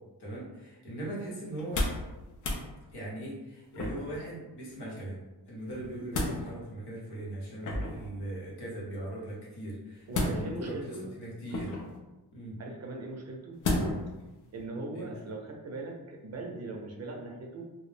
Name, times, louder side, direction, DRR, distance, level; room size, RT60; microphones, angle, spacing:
voice 1, 0.2-1.9 2.9-5.2 5.5-11.7 12.3-12.6 14.9-15.2, right 1 dB, 90° left, -5 dB, 1.0 m, -39 dB
sound 1, 1.5-2.1 2.4-2.6 3.8-4.2 5.7-6.4 7.6-8.1 10.1-10.7 11.5-12.0 13.6-14.1 14.6-14.7, left 2 dB, 50° left, 0.5 m, -31 dB
voice 2, 10.1-11.1 12.6-13.6 14.5-17.6, right 2 dB, 45° right, 0 dB, 0.4 m, -40 dB
2.3 x 2.0 x 3.2 m, 1.1 s
wide cardioid pair, 165°, 39 cm